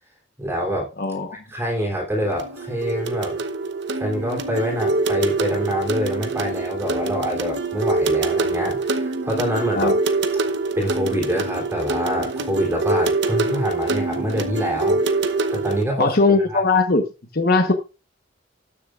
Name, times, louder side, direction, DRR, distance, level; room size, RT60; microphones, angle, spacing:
voice 1, 0.4-0.9 1.4-3.4 4.0-9.9 10.7-15.0 15.5-16.6, equal, 15° right, -1 dB, 3.3 m, -25 dB
voice 2, 1.0-1.4 9.7-9.9 16.0-17.0 17.3-17.7, left 3 dB, 55° left, 4 dB, 1.2 m, -19 dB
sound 1, 2.2-15.8, right 3 dB, 70° right, 0.9 m, -24 dB
19.0 x 6.7 x 2.5 m, 0.30 s
head